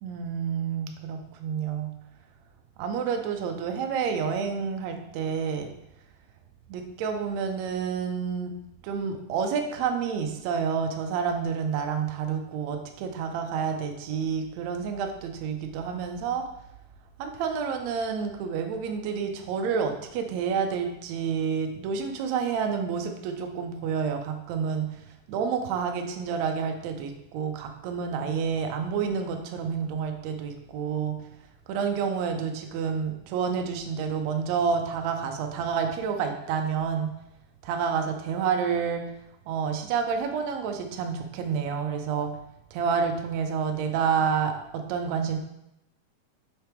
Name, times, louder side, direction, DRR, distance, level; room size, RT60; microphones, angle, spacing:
voice 1, 0.0-1.9 2.8-5.7 6.7-8.6 8.8-16.4 17.2-25.0 25.3-31.1 31.7-37.1 37.6-39.1 39.5-42.3 42.7-45.4, right 6 dB, 90° right, 4 dB, 1.5 m, -29 dB
6.5 x 3.4 x 4.4 m, 0.84 s
omnidirectional pair, 3.9 m